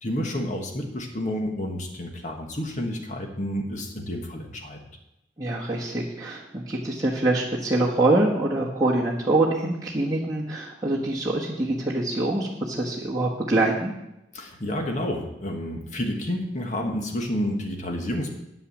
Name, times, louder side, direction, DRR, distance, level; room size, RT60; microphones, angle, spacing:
voice 1, 0.0-4.8 14.3-18.3, left 1 dB, 40° left, 2 dB, 1.5 m, -30 dB
voice 2, 5.4-13.9, right 2 dB, 20° right, -6 dB, 1.3 m, -24 dB
9.7 x 6.8 x 7.2 m, 0.88 s
head